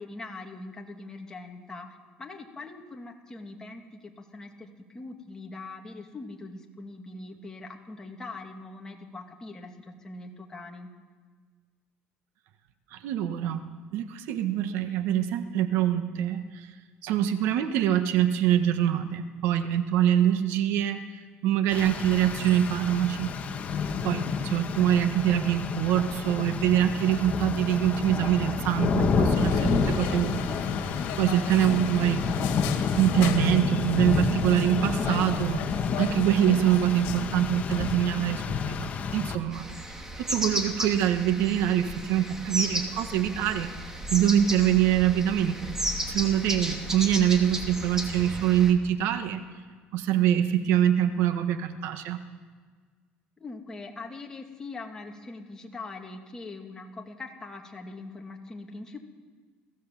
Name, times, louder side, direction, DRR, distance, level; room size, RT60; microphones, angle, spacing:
voice 1, 0.0-10.9 53.4-59.0, left 3 dB, 15° left, 2 dB, 2.5 m, -42 dB
voice 2, 12.9-13.6 13.9-16.7 17.0-21.0 21.4-23.3 24.0-30.6 31.2-32.2 33.0-43.7 44.1-45.7 46.1-49.4 49.9-52.2, right 10 dB, 75° right, 9 dB, 1.4 m, -24 dB
Rain, 21.7-39.3, left 5 dB, 35° left, 1.7 m, -29 dB
sound 1, 29.3-38.0, left 10 dB, 85° left, 1.9 m, -38 dB
sound 2, 39.5-48.7, right 1 dB, 10° right, 2.7 m, -34 dB
23.0 x 16.5 x 7.5 m, 1.5 s
cardioid pair, 130°, 4 cm